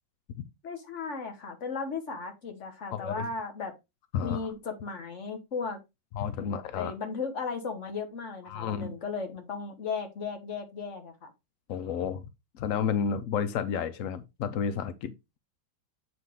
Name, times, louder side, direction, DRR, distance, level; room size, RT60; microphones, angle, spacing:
voice 1, 0.6-3.7 4.2-5.8 6.4-6.5 6.7-11.3, left 4 dB, 40° left, 1.5 m, -36 dB
voice 2, 2.9-3.3 4.1-4.4 6.1-6.9 8.5-8.9 11.7-12.2 12.6-15.1, left 7 dB, 75° left, 0.7 m, -31 dB
7.9 x 5.1 x 3.6 m
omnidirectional pair, 2.2 m